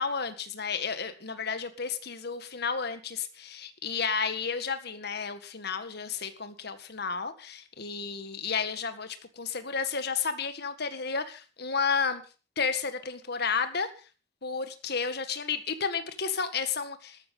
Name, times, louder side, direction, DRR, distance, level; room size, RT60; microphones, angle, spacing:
voice 1, 0.0-12.2 12.6-13.9 14.4-17.2, left 5 dB, 55° left, 9 dB, 1.8 m, -32 dB
13.0 x 13.0 x 5.5 m, 0.36 s
head